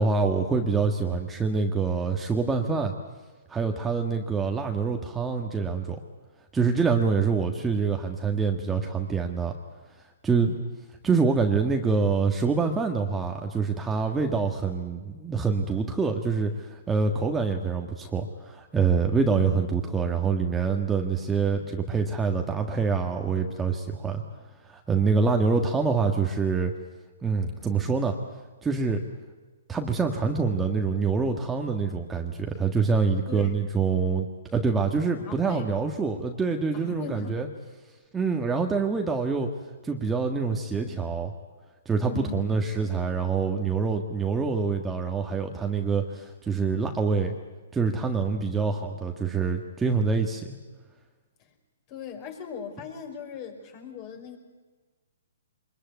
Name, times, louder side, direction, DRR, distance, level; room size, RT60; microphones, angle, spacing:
voice 1, 0.0-2.9 3.5-6.0 6.5-9.5 10.2-10.6 11.0-24.2 24.6-26.7 27.2-28.2 28.6-29.0 29.7-34.3 34.5-37.5 38.1-39.5 39.8-41.3 41.8-47.4 47.7-50.6, right 5 dB, 10° right, 3 dB, 1.6 m, -26 dB
voice 2, 35.2-35.8 36.7-37.4 42.0-42.5 51.4-51.5 51.9-54.4, left 7 dB, 35° left, 5 dB, 5.1 m, -39 dB
24.5 x 21.5 x 9.4 m, 1.3 s
hypercardioid pair, 145°, 0 cm